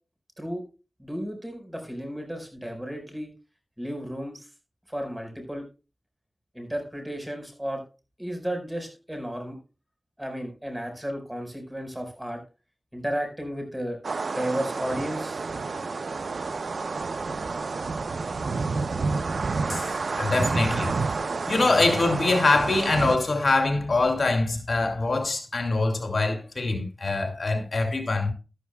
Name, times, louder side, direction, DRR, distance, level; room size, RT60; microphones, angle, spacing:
voice 1, 1.0-3.3 3.8-4.5 4.9-5.6 6.5-7.8 8.2-9.6 10.2-12.4 12.9-14.0 14.3-15.5, equal, 10° right, 4.6 m, -33 dB
sound 1, 14.0-23.2, right 4 dB, 90° right, 0.6 m, -29 dB
voice 2, 19.7-21.0 21.3-28.3, left 3 dB, 70° left, 2.5 m, -24 dB
13.0 x 12.5 x 2.2 m
wide cardioid pair, 70°, 0 cm